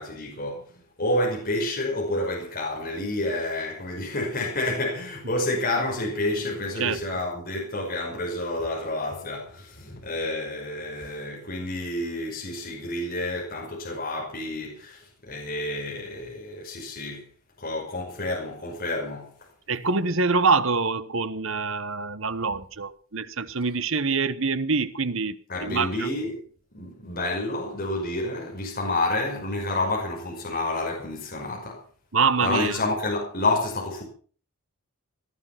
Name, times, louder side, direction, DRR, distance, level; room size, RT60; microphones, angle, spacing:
voice 1, 0.0-17.3 17.6-19.5 25.5-26.4 26.7-31.8 32.4-34.0, left 2 dB, 40° left, 5.5 m, -29 dB
voice 2, 6.7-7.2 19.7-26.1 32.1-32.8, right 4 dB, 60° right, 1.1 m, -25 dB
19.0 x 11.5 x 5.9 m
head